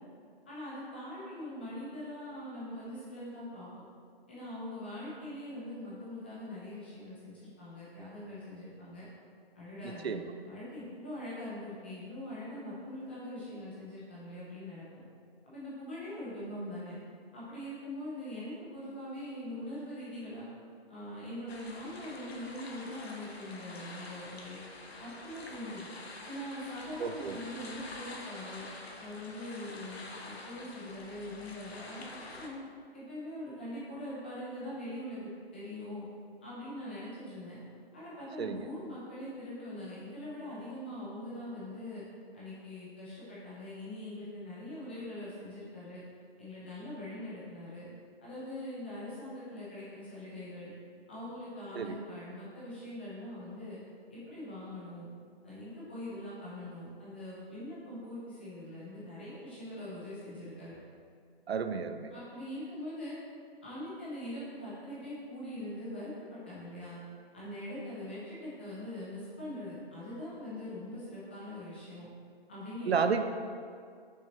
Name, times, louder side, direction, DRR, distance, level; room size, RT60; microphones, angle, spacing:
voice 1, 0.5-3.8 4.3-9.1 9.5-14.8 15.4-16.9 17.3-20.4 20.9-24.6 25.0-25.9 26.2-28.6 29.0-32.6 32.9-36.0 36.4-37.6 37.9-42.0 42.3-46.0 46.4-47.9 48.2-50.7 51.1-53.8 54.1-55.1 55.4-60.7 62.1-63.2 63.6-67.0 67.3-72.1 72.5-73.0, left 1 dB, 10° left, -9 dB, 0.7 m, -42 dB
sound 1, 21.5-32.5, left 2 dB, 80° left, 1.1 m, -47 dB
voice 2, 27.0-27.4 38.4-38.6 51.7-52.0 61.5-62.1 72.9-73.3, right 6 dB, 85° right, 8 dB, 0.6 m, -31 dB
7.0 x 6.2 x 3.1 m, 2.2 s
hypercardioid pair, 170°, 31 cm